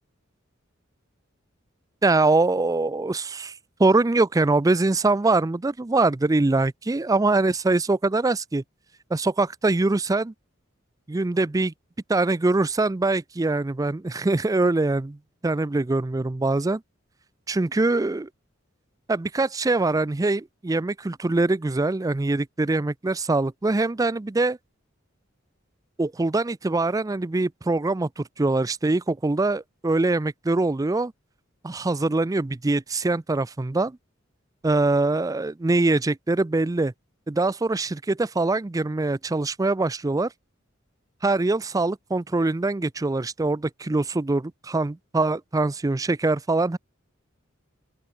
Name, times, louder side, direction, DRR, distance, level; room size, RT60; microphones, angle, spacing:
voice 1, 2.0-3.5 3.8-8.6 9.1-10.3 11.1-11.7 12.1-15.2 15.4-16.8 17.5-18.3 19.1-24.6 26.0-31.1 31.6-34.0 34.6-36.9 37.3-40.3 41.2-46.8, right 2 dB, 15° right, 0.4 m, -23 dB
open air
head